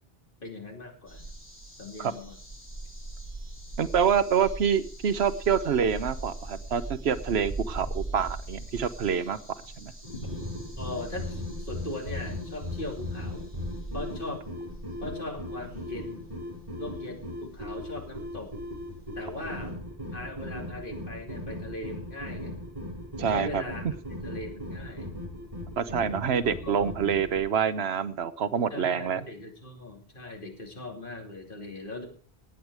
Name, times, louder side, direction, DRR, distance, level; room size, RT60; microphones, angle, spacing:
voice 1, 0.4-1.3 1.8-2.4 10.1-10.3 10.8-13.5 13.9-14.6 15.0-16.3 16.8-18.5 19.2-19.7 20.1-22.5 23.3-25.1 26.6-26.9 28.7-32.1, left 2 dB, 55° left, 2 dB, 3.0 m, -39 dB
sound 1, 1.1-16.2 17.9-18.0 18.2-18.3, right 2 dB, 10° left, 4.0 m, -41 dB
voice 2, 3.8-9.4 9.8-9.9 23.2-23.6 25.8-29.2, right 7 dB, 75° right, 13 dB, 1.1 m, -26 dB
sound 2, 10.0-27.4, left 1 dB, 30° right, 6.2 m, -38 dB
18.5 x 8.1 x 4.8 m, 0.43 s
omnidirectional pair, 1.1 m